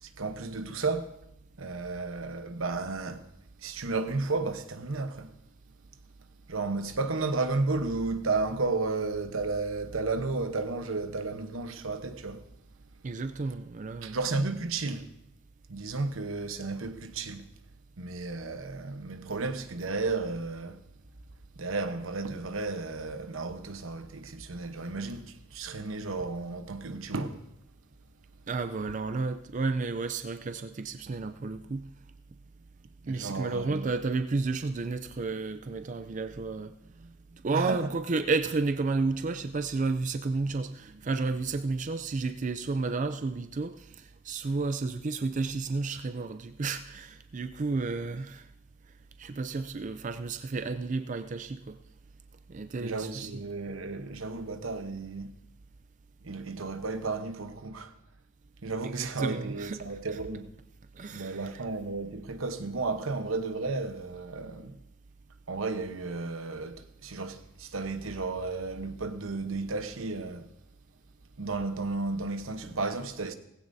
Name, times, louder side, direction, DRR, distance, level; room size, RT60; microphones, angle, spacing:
voice 1, 0.0-1.1 1.6-3.2 3.6-5.3 6.5-12.4 14.0-15.1 15.7-17.5 18.0-20.8 21.6-27.4 33.0-33.9 37.5-37.9 52.8-55.3 56.2-57.9 58.6-60.5 61.1-64.8 65.5-70.5 71.4-73.3, right 3 dB, 85° right, 1.0 m, -33 dB
voice 2, 13.0-14.2 28.5-31.8 33.1-36.7 37.0-48.5 49.2-51.8 52.5-53.3 58.8-60.2 61.0-61.6, right 3 dB, 40° right, 0.4 m, -32 dB
17.5 x 15.5 x 2.7 m
head